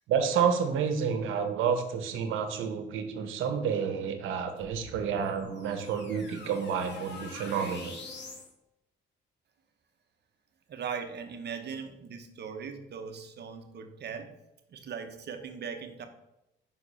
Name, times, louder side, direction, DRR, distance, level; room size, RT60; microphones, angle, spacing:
voice 1, 0.1-8.0, right 7 dB, 90° right, 8 dB, 1.0 m, -29 dB
sound 1, 4.6-8.5, left 3 dB, 60° left, 1.6 m, -45 dB
voice 2, 10.7-14.3 14.7-16.1, right 6 dB, 55° right, 7 dB, 1.0 m, -39 dB
5.9 x 4.8 x 5.6 m, 0.87 s
cardioid pair, 90°, 20 cm